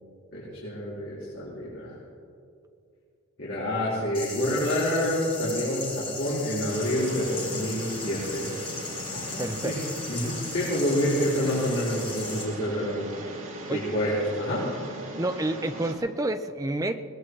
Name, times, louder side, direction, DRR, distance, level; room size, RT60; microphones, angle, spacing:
voice 1, 0.3-1.9 3.4-8.5 9.1-9.8 10.1-14.6, equal, 60° left, -9 dB, 4.5 m, -28 dB
sound 1, 4.1-12.4, left 4 dB, 25° left, 3.3 m, -37 dB
sound 2, 6.7-15.9, right 2 dB, 70° right, 2.7 m, -40 dB
voice 2, 9.4-9.8 13.7-13.8 15.2-17.0, right 1 dB, 15° right, 8 dB, 0.6 m, -29 dB
21.5 x 19.5 x 3.2 m, 2.4 s
head